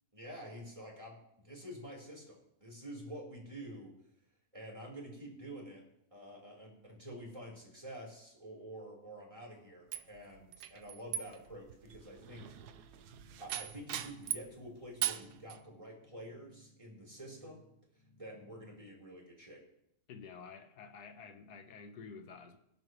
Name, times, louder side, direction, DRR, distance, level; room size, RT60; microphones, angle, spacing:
voice 1, 0.1-3.9 4.5-5.8 6.1-12.5 13.4-17.6 18.2-19.6, equal, 20° right, 3.8 m, -48 dB
sound 1, 9.9-14.6 15.0-15.6, right 11 dB, 85° right, 1.3 m, -40 dB
Mallet percussion, 11.9-15.2, equal, 55° right, 0.9 m, -67 dB
sound 2, 12.2-18.9, left 1 dB, 20° left, 1.8 m, -63 dB
voice 2, 20.1-22.6, left 5 dB, 90° left, 1.6 m, -50 dB
22.5 x 11.0 x 3.1 m
omnidirectional pair, 1.6 m